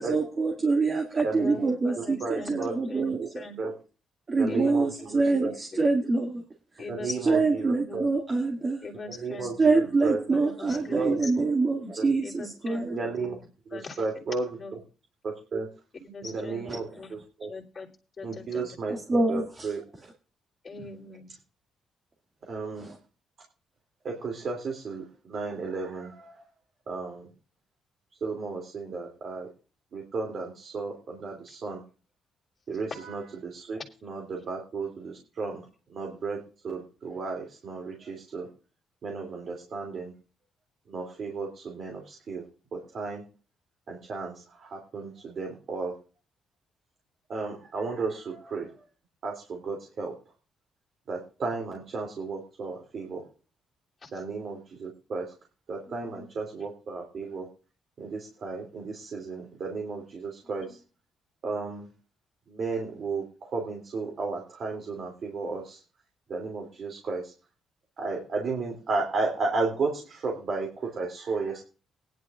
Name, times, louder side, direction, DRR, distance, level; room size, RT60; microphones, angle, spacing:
voice 1, 0.0-3.2 4.3-6.4 7.3-8.8 9.6-13.0 18.9-19.7 22.8-23.0, right 3 dB, 35° right, -1 dB, 2.1 m, -25 dB
voice 2, 1.3-2.6 2.9-3.6 4.5-4.7 5.0-5.9 6.8-8.0 8.8-11.5 12.2-13.4 13.7-14.1 14.5-14.7 16.0-17.1 17.5-17.9 18.2-18.6 20.6-21.3 31.5-31.6 54.0-54.2 55.9-56.2 60.4-60.8, left 3 dB, 30° left, -5 dB, 3.1 m, -42 dB
voice 3, 2.0-2.8 3.2-3.3 3.6-3.7 4.4-5.5 6.9-8.1 9.2-10.2 10.9-11.2 12.0-12.1 12.9-13.4 13.7-14.4 15.2-15.7 16.2-17.5 18.2-19.8 22.5-22.9 24.0-26.4 26.9-27.3 28.2-29.5 29.9-31.8 32.7-35.6 35.9-38.5 39.0-40.1 40.9-42.4 42.7-43.2 43.9-45.9 47.3-48.7 49.2-50.1 51.1-53.2 54.1-55.3 55.7-57.5 58.0-60.8 61.4-61.9 62.5-65.8 66.3-67.3 68.0-71.6, right 4 dB, 55° right, 0 dB, 2.8 m, -33 dB
19.5 x 10.5 x 2.5 m, 0.35 s
cardioid pair, 90°, 0 cm